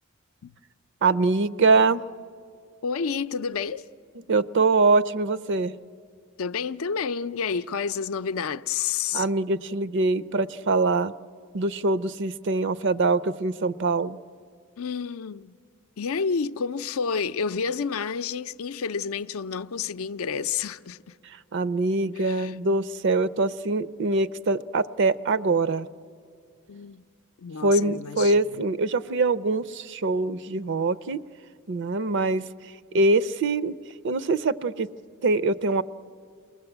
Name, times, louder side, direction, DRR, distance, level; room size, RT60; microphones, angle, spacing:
voice 1, 1.0-2.0 4.3-5.8 9.1-11.1 11.5-14.2 21.5-25.9 27.6-31.2 31.7-32.4 32.9-33.7 34.0-34.9 35.2-35.8, right 3 dB, 60° right, 0.5 m, -23 dB
voice 2, 2.8-3.8 6.4-9.3 14.8-15.5 16.0-21.2 22.2-22.5 26.7-27.0 27.4-28.7, left 6 dB, 85° left, 0.5 m, -30 dB
28.0 x 20.0 x 8.0 m
head